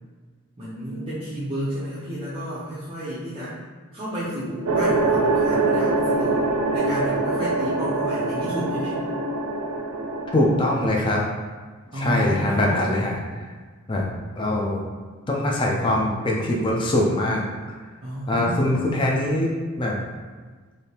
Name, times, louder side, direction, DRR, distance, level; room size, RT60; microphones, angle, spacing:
voice 1, 0.6-3.6 3.9-9.0 11.9-12.9 18.0-18.8, equal, 25° right, -10 dB, 0.6 m, -31 dB
sound 1, 4.7-10.9, right 3 dB, 85° right, 0.5 m, -24 dB
voice 2, 10.3-11.3 12.0-13.5 13.9-14.1 14.4-14.8 15.3-17.4 18.3-19.5 19.8-20.0, left 1 dB, 20° left, -2 dB, 0.4 m, -22 dB
3.4 x 2.6 x 2.8 m, 1.4 s
head